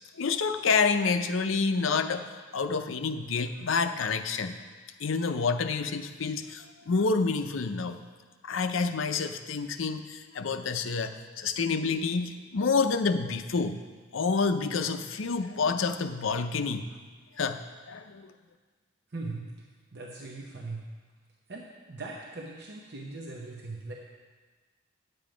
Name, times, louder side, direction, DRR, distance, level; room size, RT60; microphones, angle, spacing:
voice 1, 0.2-2.3 2.5-4.6 5.0-8.0 8.4-13.8 14.1-16.9 17.4-18.3, left 4 dB, 75° left, 8 dB, 0.6 m, -28 dB
voice 2, 19.1-19.5 19.9-20.9 21.5-23.9, right 3 dB, 55° right, -1 dB, 0.8 m, -40 dB
9.3 x 7.7 x 5.0 m, 1.4 s
head